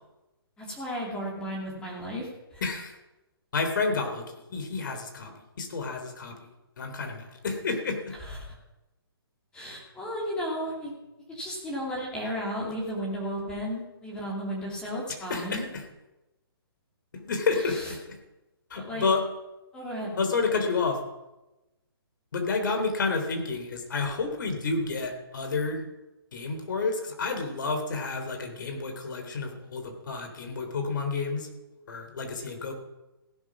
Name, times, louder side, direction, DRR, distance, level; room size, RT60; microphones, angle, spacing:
voice 1, 0.6-2.6 8.1-8.5 9.5-10.9 11.3-15.6 17.7-17.9 18.7-19.0 19.7-20.2, equal, 5° left, -3 dB, 2.6 m, -34 dB
voice 2, 2.6-2.9 3.5-6.4 6.8-8.1 15.3-15.8 17.2-18.2 18.7-19.2 20.2-21.0 22.3-25.8 26.3-31.5 31.9-32.7, left 4 dB, 55° left, 6 dB, 3.4 m, -30 dB
16.0 x 11.0 x 6.1 m, 1.0 s
hypercardioid pair, 170°, 13 cm